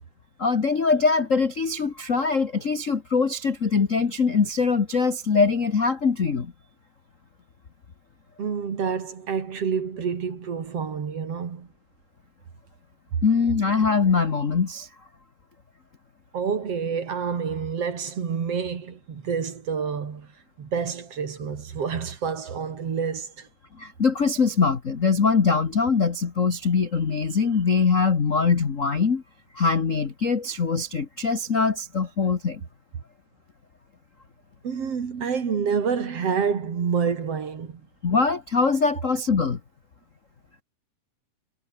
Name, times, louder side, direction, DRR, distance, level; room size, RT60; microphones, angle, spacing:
voice 1, 0.4-6.5 13.2-14.9 23.8-29.2 29.5-32.6 38.0-39.6, left 5 dB, 45° left, 1.0 m, -22 dB
voice 2, 8.4-11.7 16.3-20.3 20.6-23.5 34.6-37.8, right 6 dB, 50° right, 3.4 m, -28 dB
omnidirectional pair, 3.6 m